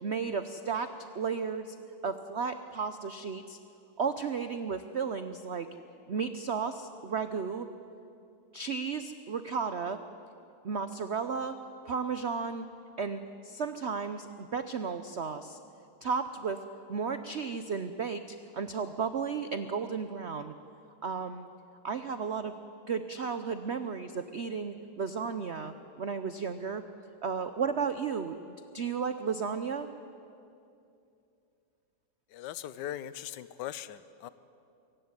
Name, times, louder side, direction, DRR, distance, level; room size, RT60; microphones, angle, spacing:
voice 1, 0.0-1.8 2.0-3.6 4.0-5.7 6.1-7.7 8.5-10.0 10.6-11.6 11.8-12.7 13.0-15.6 16.0-16.6 16.9-20.5 21.0-21.5 21.8-22.5 22.9-26.8 27.2-28.4 28.7-29.9, right 5 dB, 80° right, 10 dB, 0.6 m, -34 dB
voice 2, 32.3-34.3, left 11 dB, 70° left, 15 dB, 1.3 m, -40 dB
23.0 x 16.0 x 9.7 m, 2.6 s
omnidirectional pair, 2.2 m